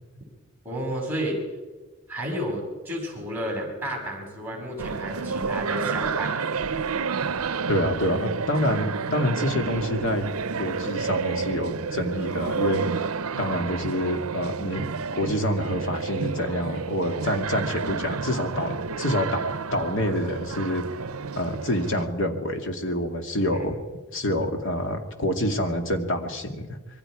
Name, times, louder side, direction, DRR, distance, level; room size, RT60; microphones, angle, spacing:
voice 1, 0.6-1.4 2.1-6.6 13.6-13.7 19.1-19.2, equal, 10° right, -1 dB, 6.4 m, -31 dB
sound 1, 4.8-22.1, right 5 dB, 75° right, 0.7 m, -30 dB
voice 2, 7.7-10.3 10.6-13.1 13.4-14.8 15.1-19.4 19.7-20.8 21.4-23.8 24.1-26.7, left 1 dB, 55° left, 4 dB, 2.4 m, -27 dB
26.5 x 22.5 x 5.0 m, 1.3 s
head